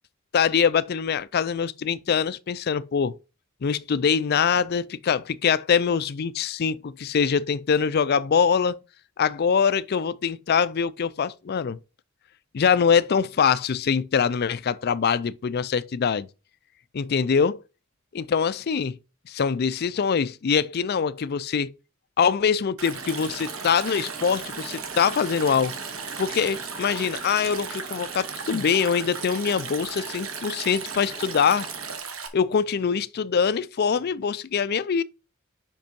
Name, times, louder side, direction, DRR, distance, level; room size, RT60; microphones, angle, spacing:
voice 1, 0.3-3.2 3.6-8.8 9.2-11.8 12.5-16.3 16.9-17.6 18.1-18.9 19.3-21.7 22.2-25.7 26.2-31.7 32.3-35.0, left 6 dB, 50° left, 0.4 m, -23 dB
Stream, 22.8-32.3, right 6 dB, 80° right, 1.2 m, -36 dB
sound 1, 22.9-32.0, right 1 dB, 15° right, 2.1 m, -44 dB
5.3 x 5.2 x 5.2 m
head